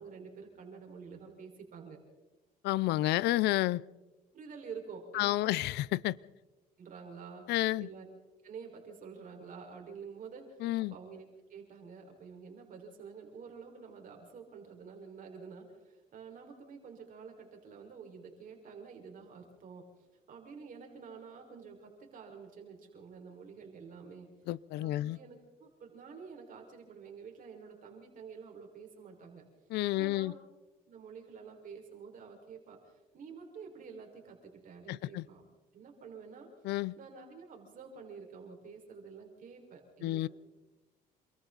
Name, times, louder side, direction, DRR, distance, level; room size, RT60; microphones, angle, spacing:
voice 1, 0.0-2.0 4.3-5.6 6.8-7.5 7.8-8.1 8.4-19.9 20.3-24.3 24.8-29.4 29.9-30.4 30.9-35.4 35.7-36.5 37.0-40.3, right 5 dB, 55° right, 5.2 m, -49 dB
voice 2, 2.6-3.8 5.1-6.2 7.5-7.9 10.6-10.9 24.5-25.2 29.7-30.3 34.9-35.2 36.6-37.0 40.0-40.3, left 16 dB, 80° left, 0.6 m, -30 dB
28.5 x 23.0 x 4.1 m
cardioid pair, 110°, 17 cm